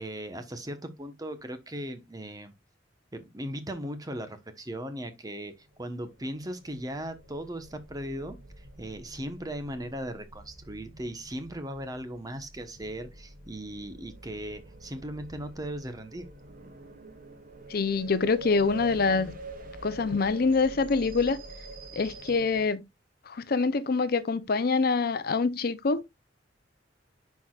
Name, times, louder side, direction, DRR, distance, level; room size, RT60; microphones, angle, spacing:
voice 1, 0.0-2.5 3.1-5.5 5.8-16.3, right 1 dB, 20° right, 1.0 m, -38 dB
sound 1, 5.8-22.7, right 2 dB, 50° right, 1.1 m, -46 dB
voice 2, 17.7-19.3 19.8-21.4 22.0-22.8 23.3-26.0, left 4 dB, 55° left, 0.6 m, -25 dB
10.0 x 4.7 x 2.3 m
head